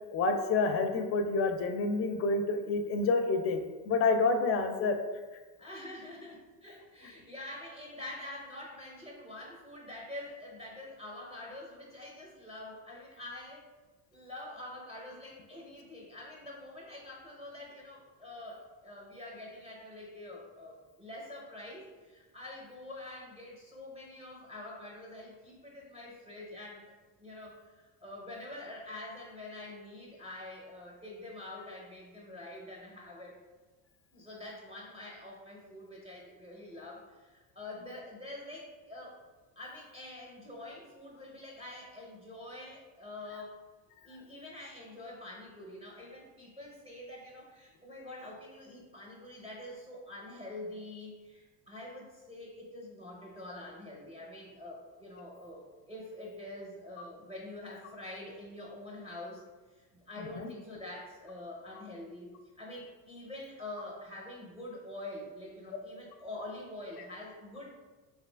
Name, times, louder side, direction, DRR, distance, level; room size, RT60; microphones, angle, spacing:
voice 1, 0.1-5.0 60.2-60.5, left 3 dB, 35° left, 6 dB, 0.4 m, -28 dB
voice 2, 5.6-13.6 14.1-26.9 27.2-33.4 34.1-39.2 39.6-43.6 44.0-59.4 59.7-62.3 62.6-67.7, left 1 dB, 15° right, -4 dB, 0.6 m, -46 dB
2.7 x 2.5 x 3.3 m, 1.3 s
supercardioid pair, 110°, 41 cm